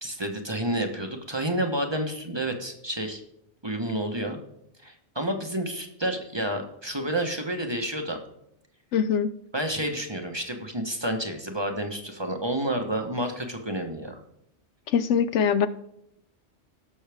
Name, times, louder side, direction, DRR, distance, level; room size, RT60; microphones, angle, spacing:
voice 1, 0.0-3.2 3.6-4.4 4.8-8.2 9.5-14.2, right 1 dB, 25° right, 4 dB, 1.2 m, -30 dB
voice 2, 8.9-9.3 14.9-15.7, left 7 dB, 75° left, 12 dB, 1.0 m, -22 dB
18.0 x 6.4 x 3.5 m, 0.78 s
omnidirectional pair, 1.2 m